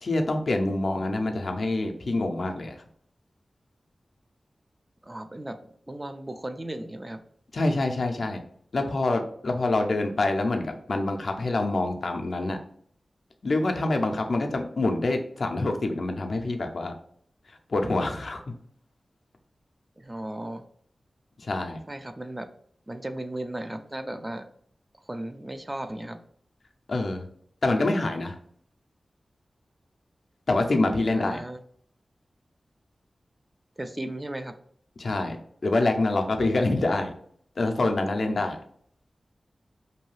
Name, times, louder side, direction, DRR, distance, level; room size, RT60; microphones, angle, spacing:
voice 1, 0.0-2.8 7.5-8.4 8.7-12.6 13.4-16.9 17.7-18.5 21.4-21.8 26.9-27.3 27.6-28.4 30.5-31.4 35.0-35.4 35.6-37.1 37.6-38.6, left 2 dB, 70° left, 4 dB, 0.4 m, -26 dB
voice 2, 5.0-5.6 5.9-7.2 20.0-20.6 21.9-22.5 22.9-24.4 25.0-26.2 31.1-31.6 33.8-34.5, right 1 dB, 25° right, 8 dB, 0.3 m, -35 dB
2.6 x 2.3 x 3.1 m, 0.62 s
cardioid pair, 50°, 0 cm